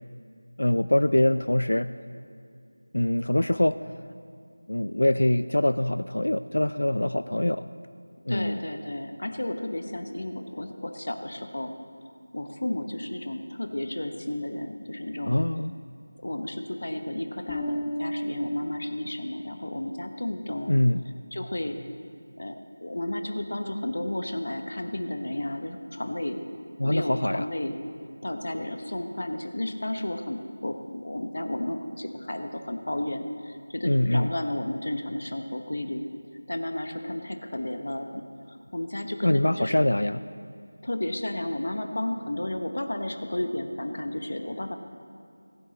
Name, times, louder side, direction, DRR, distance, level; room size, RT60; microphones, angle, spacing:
voice 1, 0.6-1.9 2.9-3.8 4.7-7.7 8.3-8.6 15.3-15.7 20.7-21.0 26.8-27.5 33.8-34.3 39.2-40.2, left 1 dB, 90° left, 12 dB, 0.3 m, -24 dB
voice 2, 8.3-11.7 12.3-15.3 16.2-20.7 21.3-21.8 22.4-26.4 26.8-27.7 28.2-36.0 36.5-38.2 38.5-39.8 40.8-44.8, left 1 dB, 55° left, 6 dB, 0.9 m, -32 dB
Bass guitar, 17.5-19.9, equal, 5° left, 0.4 m, -33 dB
15.5 x 9.4 x 4.0 m, 2.3 s
figure-of-eight pair, 180°, 0 cm